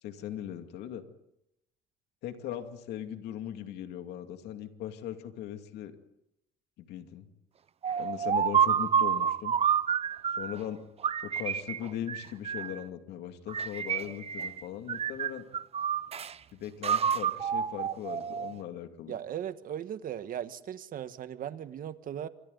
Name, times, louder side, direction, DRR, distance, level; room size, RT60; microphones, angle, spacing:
voice 1, 0.0-1.0 2.2-5.9 6.8-7.3 8.0-9.5 10.4-10.8 11.2-15.4 16.5-19.2, left 11 dB, 80° left, 6 dB, 2.4 m, -39 dB
sound 1, 7.8-10.6 11.0-12.8 13.5-14.6 14.9-16.3 16.8-18.6, right 8 dB, 35° right, 0.8 m, -29 dB
voice 2, 19.1-22.3, right 10 dB, 55° right, 10 dB, 1.5 m, -38 dB
27.0 x 26.5 x 4.1 m, 0.84 s
cardioid pair, 110°, 17 cm